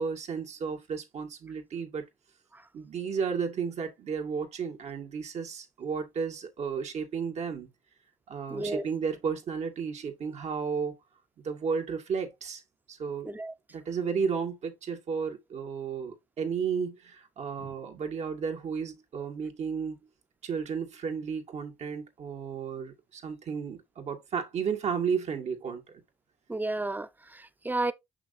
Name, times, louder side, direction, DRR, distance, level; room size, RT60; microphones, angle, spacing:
voice 1, 0.0-2.0 2.7-7.7 8.3-11.0 11.4-12.6 12.9-13.3 13.7-20.0 20.4-25.8, right 6 dB, 65° right, 2.0 m, -33 dB
voice 2, 8.5-8.8 13.2-13.5 17.6-17.7 26.5-27.9, right 2 dB, 15° right, 0.8 m, -32 dB
6.4 x 6.0 x 2.7 m
cardioid pair, 75°, 12 cm